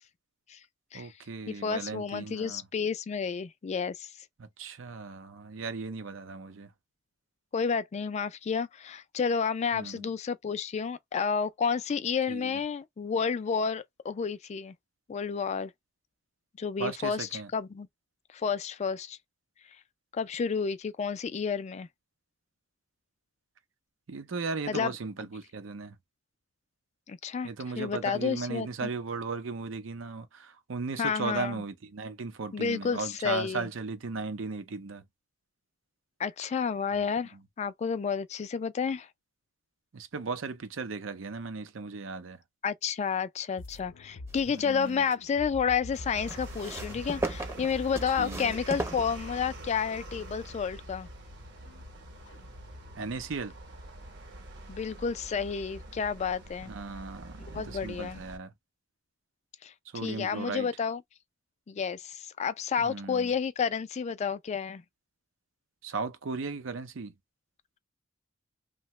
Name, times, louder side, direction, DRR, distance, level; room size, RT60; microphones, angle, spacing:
voice 1, 0.9-2.6 4.6-6.7 9.7-10.1 12.3-12.5 16.8-17.5 24.1-25.9 27.4-35.0 39.9-42.4 44.7-45.0 48.2-48.5 53.0-53.5 56.7-58.5 59.9-60.7 62.8-63.3 65.8-67.1, right 4 dB, 90° right, 0.6 m, -36 dB
voice 2, 1.5-4.1 7.5-14.7 15.1-15.7 16.6-17.9 18.3-19.2 20.1-21.9 24.7-25.0 27.1-28.9 31.0-31.6 32.5-33.7 36.2-39.1 42.6-51.1 54.7-56.7 57.5-58.2 59.6-61.0 61.7-64.8, left 6 dB, 35° left, 0.3 m, -31 dB
sound 1, 43.6-53.3, left 3 dB, 70° left, 0.6 m, -49 dB
sound 2, 44.3-45.1 46.3-49.7 50.6-50.7, right 2 dB, 15° right, 0.6 m, -38 dB
sound 3, 45.9-58.4, right 1 dB, 65° right, 0.9 m, -45 dB
2.8 x 2.1 x 3.0 m
head